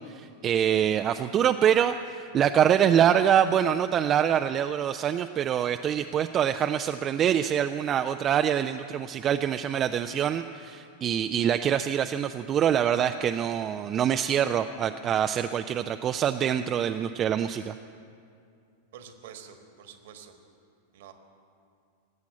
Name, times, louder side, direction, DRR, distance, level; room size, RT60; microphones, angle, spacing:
voice 1, 0.1-17.7, right 9 dB, 30° right, 8 dB, 0.4 m, -25 dB
voice 2, 18.9-20.3 20.9-21.1, right 8 dB, 55° right, 7 dB, 1.4 m, -47 dB
19.0 x 8.3 x 8.7 m, 2.4 s
figure-of-eight pair, 90°, 0 cm